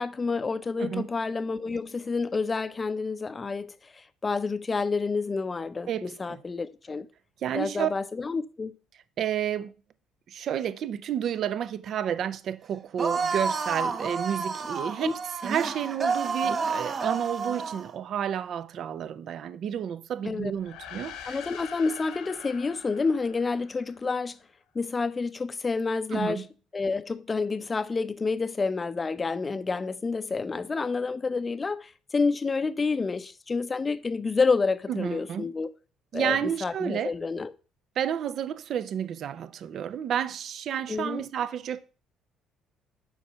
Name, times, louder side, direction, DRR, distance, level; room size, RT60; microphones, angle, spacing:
voice 1, 0.0-7.1 7.5-8.8 15.0-15.1 20.2-20.5 21.3-24.4 24.7-26.4 26.7-35.7 36.1-37.5 40.9-41.2, left 4 dB, 25° left, 0.6 m, -29 dB
voice 2, 5.9-6.4 7.4-7.9 9.2-9.7 10.3-21.4 26.1-26.5 34.9-35.4 36.1-37.1 38.0-41.8, right 9 dB, 60° right, 0.6 m, -31 dB
sound 1, 13.0-17.9, right 5 dB, 40° right, 0.9 m, -30 dB
sound 2, 20.5-24.2, left 8 dB, 80° left, 1.3 m, -44 dB
7.2 x 5.1 x 5.5 m
cardioid pair, 95°, 0 cm